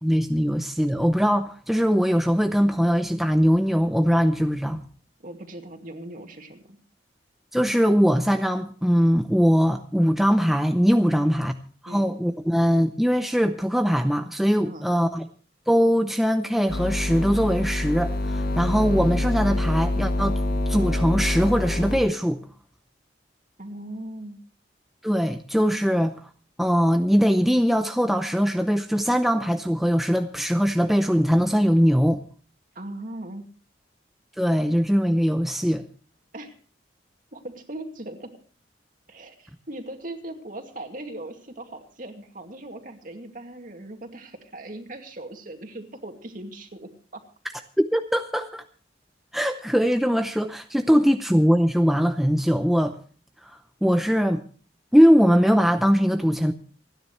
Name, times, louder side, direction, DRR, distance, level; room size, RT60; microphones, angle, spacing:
voice 1, 0.0-4.8 7.5-11.5 11.8-15.3 15.7-20.4 20.7-22.4 25.0-26.3 26.6-32.2 34.4-35.8 47.8-48.6 49.3-53.0 53.8-54.4 54.9-56.5, equal, ahead, 6 dB, 0.6 m, -21 dB
voice 2, 5.2-6.8 11.1-11.3 11.9-12.1 14.6-14.9 23.6-24.4 32.7-33.5 36.3-36.6 37.3-38.3 39.1-47.2, right 1 dB, 50° right, 4 dB, 2.3 m, -39 dB
sound 1, 16.7-22.0, left 1 dB, 55° left, 1.6 m, -26 dB
28.0 x 10.0 x 3.2 m, 0.40 s
head